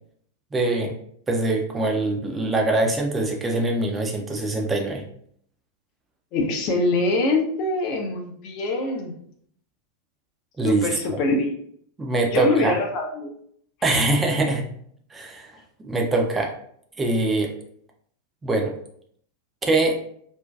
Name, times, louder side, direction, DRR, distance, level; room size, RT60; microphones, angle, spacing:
voice 1, 0.5-1.0 1.3-5.0 10.6-11.2 12.0-12.8 13.8-14.6 15.1-15.5 15.8-16.5 17.0-17.5 18.4-18.7 19.6-20.0, right 2 dB, 15° right, 1 dB, 0.5 m, -23 dB
voice 2, 6.3-9.1 10.6-11.5 12.3-13.3, left 2 dB, 40° left, 2 dB, 0.5 m, -24 dB
2.5 x 2.2 x 2.2 m, 0.65 s
figure-of-eight pair, 90°, 0 cm